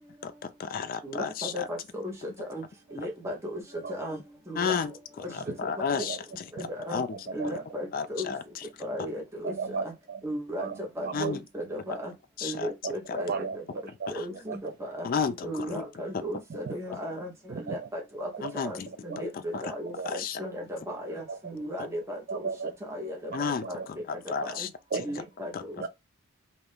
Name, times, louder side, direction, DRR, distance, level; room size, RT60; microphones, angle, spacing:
voice 1, 0.2-1.7 4.6-4.9 5.2-7.5 7.9-8.7 11.1-11.4 12.4-12.7 13.1-13.4 14.1-14.3 15.0-15.8 16.1-16.2 18.4-18.9 19.3-19.7 20.0-20.4 23.3-24.7 25.5-25.6, left 6 dB, 40° left, 0.3 m, -33 dB
voice 2, 1.0-2.1 2.5-2.6 2.9-3.6 3.9-4.2 4.5-4.8 6.8-7.0 7.3-8.3 8.8-9.5 9.8-9.9 10.2-10.7 11.0-12.1 12.4-13.6 14.1-15.1 15.4-17.3 17.7-18.3 18.6-18.8 19.0-22.5 22.9-23.2 23.7-23.8 24.4-24.7 25.0-25.7, equal, 10° right, 0.7 m, -36 dB
voice 3, 7.1-7.6 9.4-10.2 10.6-11.3 12.8-14.1 14.5-14.7 16.5-16.7 17.5-17.9 18.3-19.2 19.9-20.2 21.3-21.4 22.3-22.8 23.3-23.9 24.9-25.1 25.8-25.9, right 5 dB, 45° right, 0.3 m, -36 dB
2.6 x 2.4 x 3.4 m
head